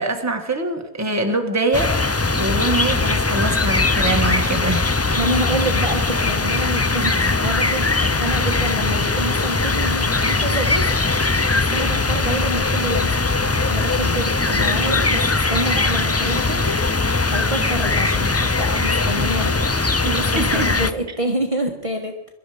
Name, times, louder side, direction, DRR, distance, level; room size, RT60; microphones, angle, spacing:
voice 1, 0.0-1.9 2.3-4.9 20.0-20.7, right 2 dB, 15° right, 4 dB, 1.6 m, -23 dB
sound 1, 1.7-20.9, left 3 dB, 25° left, 0.3 m, -20 dB
voice 2, 5.1-10.9 11.5-13.1 13.5-16.9 17.3-19.7 20.0-22.3, right 1 dB, 30° right, 2 dB, 1.5 m, -27 dB
22.5 x 12.5 x 5.0 m, 0.90 s
omnidirectional pair, 1.1 m